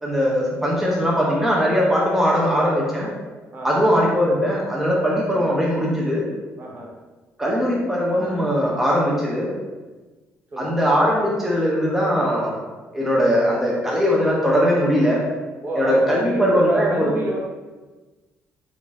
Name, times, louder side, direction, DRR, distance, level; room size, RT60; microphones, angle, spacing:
voice 1, 0.0-3.1 3.6-6.2 7.4-9.5 10.6-12.5 12.9-15.2 15.8-17.1, equal, 5° right, -4 dB, 0.7 m, -20 dB
voice 2, 3.5-3.9 6.6-6.9 10.5-10.7 15.6-17.4, right 1 dB, 35° right, -2 dB, 0.8 m, -29 dB
3.8 x 2.5 x 3.5 m, 1.2 s
cardioid pair, 115°, 5 cm